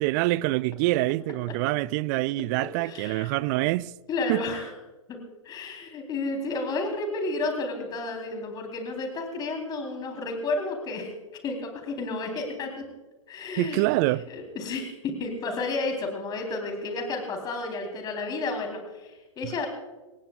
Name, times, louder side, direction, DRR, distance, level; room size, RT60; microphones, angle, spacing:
voice 1, 0.0-3.9 4.3-4.4 13.6-14.3 19.4-19.6, right 19 dB, 35° right, 0.4 m, -26 dB
voice 2, 2.6-3.3 4.1-4.7 5.1-5.2 5.4-11.1 11.4-12.8 13.3-13.8 14.3-19.7, left 3 dB, 25° left, 3.8 m, -31 dB
28.0 x 15.5 x 2.4 m
figure-of-eight pair, 110°, 17 cm